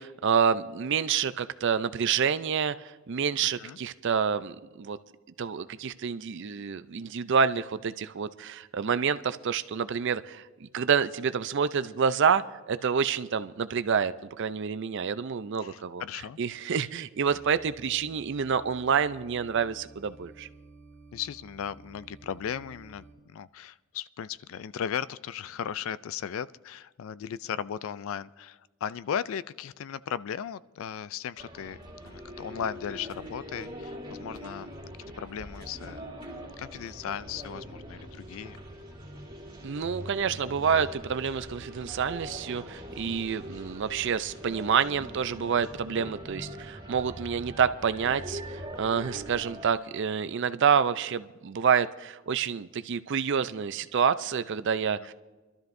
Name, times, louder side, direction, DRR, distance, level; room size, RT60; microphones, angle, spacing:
voice 1, 0.0-2.8 3.1-5.0 5.4-16.0 16.4-20.5 39.6-55.1, right 6 dB, 55° right, 13 dB, 0.4 m, -28 dB
voice 2, 3.4-3.8 15.6-16.4 21.1-31.8 32.0-34.7 35.2-36.0 36.6-38.6 55.0-55.1, left 8 dB, 65° left, 18 dB, 0.3 m, -36 dB
sound 1, 17.2-23.1, right 3 dB, 10° left, 1.8 m, -52 dB
sound 2, 31.4-49.7, equal, 20° right, 2.5 m, -42 dB
25.0 x 12.5 x 2.6 m, 1.3 s
head